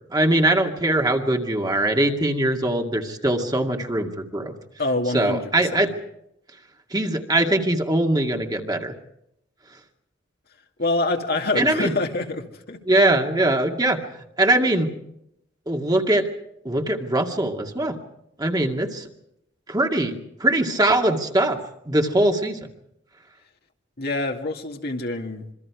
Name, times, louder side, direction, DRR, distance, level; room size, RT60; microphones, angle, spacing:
voice 1, 0.1-4.5 5.1-5.9 6.9-8.9 11.6-11.9 12.9-14.0 14.4-14.9 15.7-16.3 16.6-18.0 18.4-19.1 19.7-20.1 20.4-21.6 21.9-22.7, right 1 dB, 20° right, 3 dB, 2.1 m, -21 dB
voice 2, 4.8-5.9 10.8-12.8 24.0-25.5, left 2 dB, 55° left, 3 dB, 2.3 m, -26 dB
26.5 x 24.0 x 4.8 m, 0.80 s
head